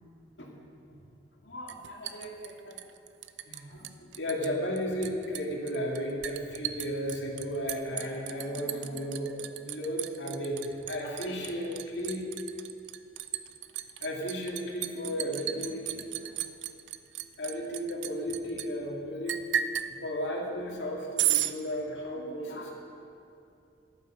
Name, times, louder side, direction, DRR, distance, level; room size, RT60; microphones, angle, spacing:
voice 1, 1.4-2.8 3.5-12.2 14.0-16.3 17.4-19.4 20.0-22.7, equal, 85° left, -1 dB, 2.2 m, -34 dB
Liquid, 1.7-3.6 3.8-4.5 4.8-18.7 19.3-19.9 21.2-21.5, right 11 dB, 85° right, 0.5 m, -34 dB
11.5 x 9.2 x 6.4 m, 2.6 s
head